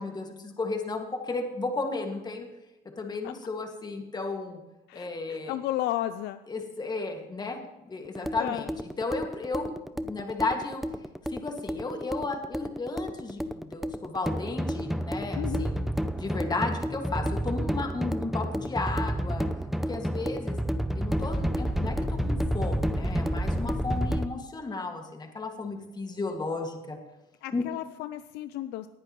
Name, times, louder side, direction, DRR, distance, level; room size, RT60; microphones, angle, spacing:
voice 1, 0.0-2.5 3.0-4.6 4.9-5.6 6.5-8.7 9.0-9.8 10.0-10.8 11.3-15.9 16.2-19.5 19.9-20.6 20.9-27.0 27.5-27.6, left 3 dB, 25° left, 3 dB, 1.9 m, -34 dB
voice 2, 4.9-6.4 8.4-8.7 15.3-15.7 27.4-28.9, left 13 dB, 85° left, 12 dB, 0.5 m, -33 dB
sound 1, 8.0-24.3, equal, ahead, 0.5 m, -30 dB
19.0 x 9.8 x 3.1 m, 1.0 s
cardioid pair, 110°, 17 cm